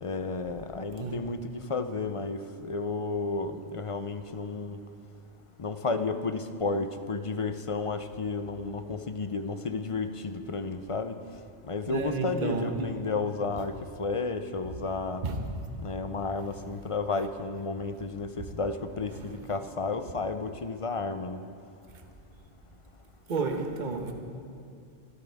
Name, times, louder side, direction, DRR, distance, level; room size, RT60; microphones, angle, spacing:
voice 1, 0.0-4.8 5.6-11.2 11.7-15.2 15.8-21.4, left 3 dB, 40° left, 9 dB, 0.5 m, -32 dB
voice 2, 11.9-12.9 15.2-15.4 23.3-24.1, right 4 dB, 40° right, 4 dB, 1.2 m, -31 dB
26.0 x 13.0 x 3.5 m, 2.4 s
omnidirectional pair, 1.2 m